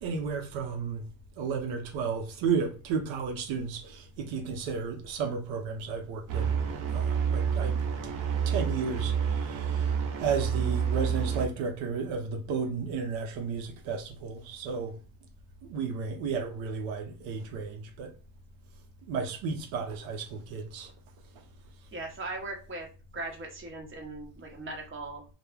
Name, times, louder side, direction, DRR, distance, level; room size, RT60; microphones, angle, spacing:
voice 1, 0.0-1.0 1.4-6.6 6.9-7.8 8.0-8.1 8.5-15.0 15.6-18.1 19.1-20.9, right 5 dB, 85° right, 0.7 m, -33 dB
sound 1, 6.3-11.5, right 7 dB, 45° right, 0.6 m, -29 dB
voice 2, 21.9-22.9 23.1-25.2, right 2 dB, 25° right, 0.9 m, -39 dB
2.1 x 2.1 x 3.1 m
cardioid pair, 95°, 45 cm